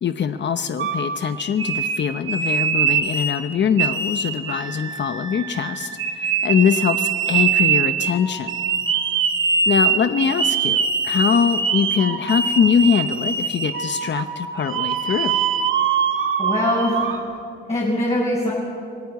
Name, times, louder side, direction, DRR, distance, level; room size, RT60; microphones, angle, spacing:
voice 1, 0.0-8.6 9.7-15.5, left 7 dB, 65° left, 9 dB, 0.9 m, -22 dB
sound 1, 0.8-3.4 3.8-17.2, right 6 dB, 80° right, 2.3 m, -23 dB
voice 2, 16.4-17.3 17.7-18.5, left 1 dB, 30° left, -5 dB, 7.2 m, -22 dB
27.0 x 19.0 x 9.4 m, 2.4 s
wide cardioid pair, 120°, 20 cm